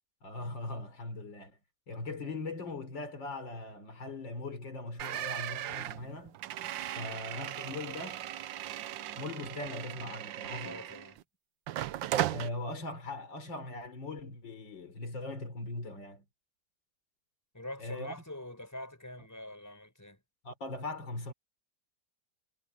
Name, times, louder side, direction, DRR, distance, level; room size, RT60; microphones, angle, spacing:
voice 1, 0.2-1.6 1.9-6.4 6.9-8.3 9.1-10.9 12.3-16.3 17.8-18.2 20.4-21.3, left 2 dB, 85° left, 4.7 m, -40 dB
sound 1, 5.0-11.2 11.7-12.5, right 12 dB, 85° right, 1.5 m, -37 dB
voice 2, 10.6-11.2 17.5-20.2, left 1 dB, 10° left, 5.8 m, -45 dB
omnidirectional pair, 2.0 m